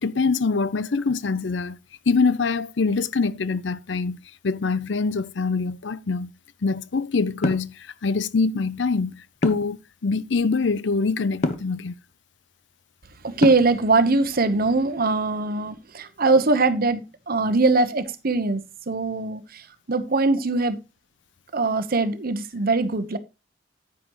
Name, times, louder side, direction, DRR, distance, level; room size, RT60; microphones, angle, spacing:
voice 1, 0.0-1.8 2.1-4.2 4.4-6.3 6.6-11.9, left 4 dB, 70° left, 0.6 m, -24 dB
sound 1, 7.4-7.7 9.4-9.8 11.4-11.7 13.4-13.8, left 2 dB, 40° left, 1.1 m, -25 dB
voice 2, 13.2-19.6 19.9-20.8 21.5-23.2, right 3 dB, 55° right, 1.1 m, -22 dB
10.0 x 9.4 x 3.1 m
head